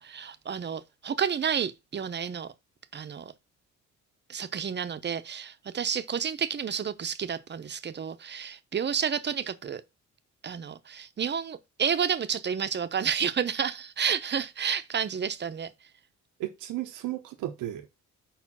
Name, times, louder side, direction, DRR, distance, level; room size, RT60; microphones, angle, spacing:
voice 1, 0.0-2.5 2.9-3.3 4.3-9.8 10.4-15.7, right 7 dB, 35° right, 0.8 m, -30 dB
voice 2, 16.4-17.9, right 14 dB, 90° right, 0.9 m, -34 dB
5.1 x 4.5 x 5.9 m
cardioid pair, 90°, 30 cm